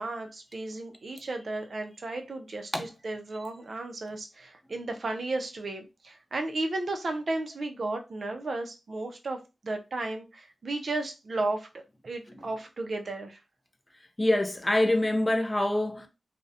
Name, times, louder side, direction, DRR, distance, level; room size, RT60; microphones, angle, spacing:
voice 1, 0.0-13.4, right 2 dB, 50° right, 0.4 m, -34 dB
voice 2, 14.2-16.1, left 1 dB, 15° left, 0.4 m, -25 dB
2.4 x 2.0 x 2.6 m
wide cardioid pair, 145°, 0 cm